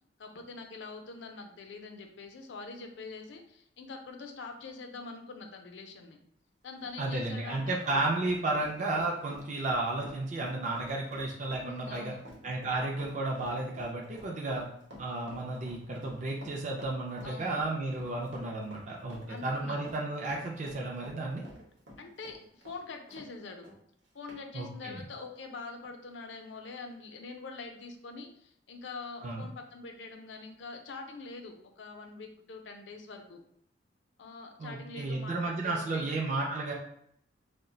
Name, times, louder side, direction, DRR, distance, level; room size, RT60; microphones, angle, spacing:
voice 1, 0.2-6.2 6.6-7.8 11.6-12.2 17.2-17.5 19.3-19.8 22.0-23.7 24.1-33.4 34.2-36.2, left 4 dB, 70° left, 4 dB, 0.5 m, -44 dB
Run, 6.6-23.3 23.6-23.8 24.3-24.4, equal, 75° right, 0.8 m, -50 dB
voice 2, 7.0-12.1 12.4-14.6 15.0-21.4 24.5-25.0 29.2-29.5 34.6-36.7, right 2 dB, 40° right, -1 dB, 0.4 m, -33 dB
2.3 x 2.1 x 3.8 m, 0.72 s
head